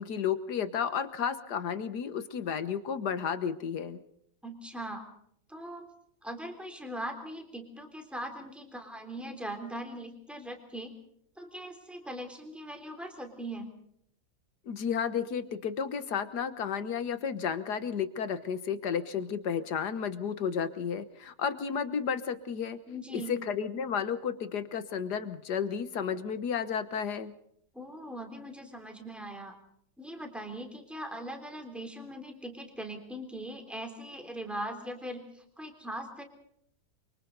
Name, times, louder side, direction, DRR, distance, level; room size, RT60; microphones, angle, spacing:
voice 1, 0.0-4.0 14.7-22.8 23.1-27.3, left 7 dB, 80° left, 11 dB, 1.8 m, -32 dB
voice 2, 4.4-5.0 5.5-5.9 6.2-10.9 11.4-13.7 22.9-23.3 27.7-29.6 30.0-36.2, right 1 dB, ahead, 4 dB, 3.5 m, -40 dB
29.0 x 24.0 x 4.0 m, 0.70 s
omnidirectional pair, 1.7 m